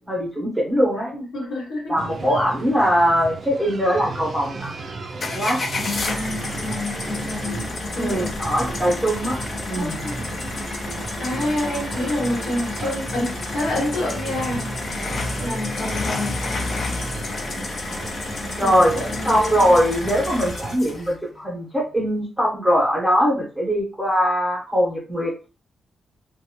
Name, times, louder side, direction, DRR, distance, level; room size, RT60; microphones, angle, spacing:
voice 1, 0.1-1.1 1.9-4.7 5.3-5.6 8.0-9.4 9.7-10.0 18.5-19.0 19.2-25.3, equal, ahead, 0.8 m, -21 dB
voice 2, 1.1-2.0 5.8-8.3 9.7-10.3 11.2-16.5 18.6-19.6, left 1 dB, 80° left, 1.1 m, -28 dB
sound 1, 2.0-20.8, right 3 dB, 40° right, 0.3 m, -35 dB
sound 2, 5.2-21.1, left 3 dB, 40° left, 0.5 m, -30 dB
2.6 x 2.1 x 2.8 m
wide cardioid pair, 165°, 0 cm